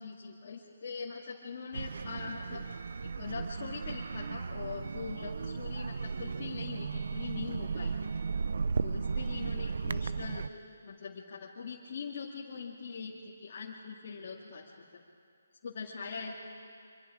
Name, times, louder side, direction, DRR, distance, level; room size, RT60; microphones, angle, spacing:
voice 1, 0.0-2.6 3.0-8.1 8.8-10.5 10.8-15.0 15.6-16.4, left 5 dB, 50° left, -4 dB, 2.1 m, -42 dB
sound 1, 1.7-10.5, right 5 dB, 65° right, 0.5 m, -35 dB
25.0 x 24.5 x 4.9 m, 2.3 s
hypercardioid pair, 155°, 0 cm